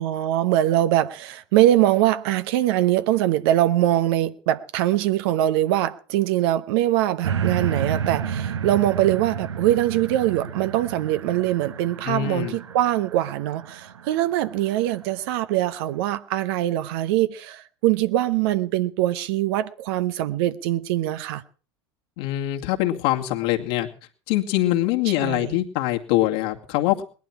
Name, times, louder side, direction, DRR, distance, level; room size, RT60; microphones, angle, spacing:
voice 1, 0.0-21.4 25.1-25.6, right 13 dB, 60° right, 0.9 m, -22 dB
sound 1, 7.2-14.6 15.2-15.3, right 7 dB, 80° right, 1.4 m, -31 dB
voice 2, 12.1-12.5 22.2-23.9 24.3-27.0, left 15 dB, 60° left, 2.4 m, -23 dB
20.0 x 11.5 x 6.0 m
hypercardioid pair, 85°, 14 cm